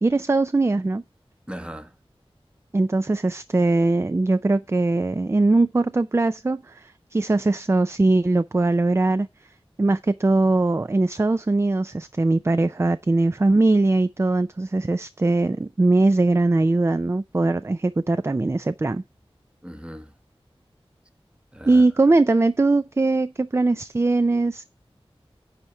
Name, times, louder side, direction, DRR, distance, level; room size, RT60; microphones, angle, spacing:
voice 1, 0.0-1.0 2.7-9.3 9.8-19.0 21.7-24.7, right 2 dB, 25° right, 0.4 m, -21 dB
voice 2, 1.5-1.9 19.6-20.1 21.5-21.8, equal, 10° right, 1.0 m, -37 dB
10.0 x 4.4 x 5.7 m
wide cardioid pair, 60°, 10 cm